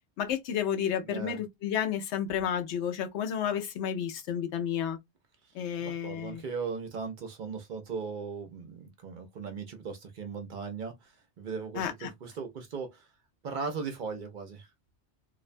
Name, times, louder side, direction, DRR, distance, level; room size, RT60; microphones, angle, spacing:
voice 1, 0.2-5.0 5.5-6.4 11.8-12.1, left 9 dB, 80° left, 0.9 m, -31 dB
voice 2, 1.0-1.4 5.8-13.1 13.4-14.7, right 5 dB, 55° right, 0.6 m, -38 dB
2.5 x 2.1 x 2.5 m
omnidirectional pair, 1.1 m